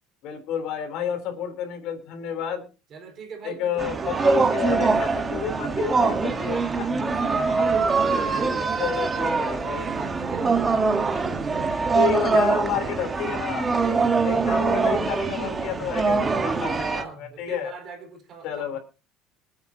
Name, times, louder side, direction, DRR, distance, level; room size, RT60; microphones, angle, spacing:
voice 1, 0.2-2.6 3.4-6.9 8.1-9.9 11.9-13.7 14.2-17.7 18.4-18.8, left 8 dB, 55° left, 3.5 m, -30 dB
voice 2, 2.9-4.7 7.0-10.6 13.8-14.6 16.6-18.8, right 5 dB, 35° right, 4.5 m, -42 dB
sound 1, 3.8-17.0, right 4 dB, 15° right, 1.3 m, -23 dB
25.5 x 8.8 x 2.8 m
cardioid pair, 165°, 0 cm